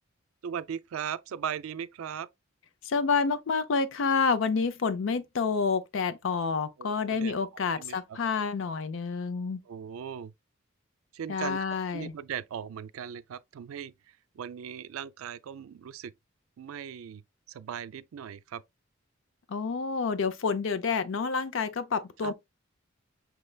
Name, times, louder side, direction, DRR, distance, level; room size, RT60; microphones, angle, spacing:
voice 1, 0.4-2.3 6.8-7.3 7.8-8.2 9.7-10.3 11.1-11.6 11.9-16.1 16.6-17.2 17.5-18.6 22.2-22.3, right 8 dB, 90° right, 0.4 m, -38 dB
voice 2, 2.8-9.6 11.3-12.1 19.5-22.3, left 5 dB, 65° left, 0.5 m, -28 dB
5.9 x 3.2 x 2.2 m
head